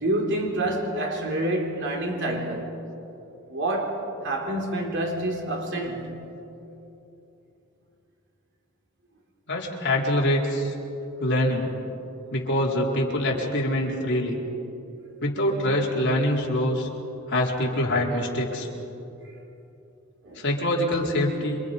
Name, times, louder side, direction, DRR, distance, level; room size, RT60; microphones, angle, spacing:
voice 1, 0.0-2.7 3.5-6.3 20.2-20.4, right 1 dB, 60° right, 3.5 m, -28 dB
voice 2, 9.5-10.7 11.2-11.7 12.3-14.4 15.2-16.9 17.3-18.7 20.4-21.6, left 1 dB, 60° left, 4.3 m, -24 dB
28.0 x 26.0 x 5.4 m
head